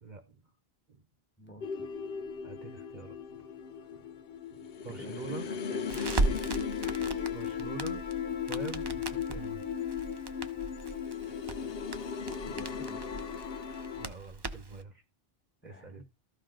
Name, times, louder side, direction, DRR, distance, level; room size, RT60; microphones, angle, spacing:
voice 1, 0.0-0.4 0.9-1.0 2.4-3.4 3.9-4.0 4.5-5.5 7.3-8.0 8.5-9.6 14.0-15.0 15.6-16.0, right 4 dB, 50° right, 1.1 m, -45 dB
voice 2, 1.4-1.8 5.0-6.5 12.5-13.1 15.6-16.0, right 1 dB, 10° left, 1.2 m, -51 dB
sound 1, 1.6-14.1, left 7 dB, 70° left, 0.9 m, -36 dB
Crackle, 5.9-14.8, right 2 dB, 30° right, 0.6 m, -37 dB
14.0 x 5.3 x 3.9 m
omnidirectional pair, 1.0 m